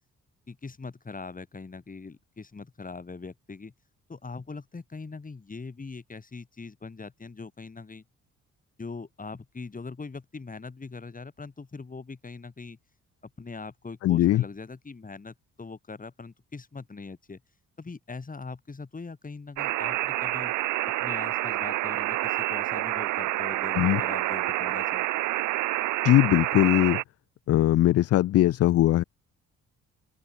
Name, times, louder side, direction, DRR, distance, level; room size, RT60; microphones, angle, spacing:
voice 1, 0.5-3.7 4.1-8.0 8.8-12.8 13.4-17.4 17.8-20.5 21.0-25.1, left 4 dB, 25° left, 6.7 m, -41 dB
voice 2, 14.0-14.4 23.8-24.0 26.0-27.0 27.5-29.0, left 14 dB, 55° left, 0.4 m, -20 dB
sound 1, 19.6-27.0, right 16 dB, 80° right, 0.7 m, -28 dB
open air
cardioid pair, 90°, 30 cm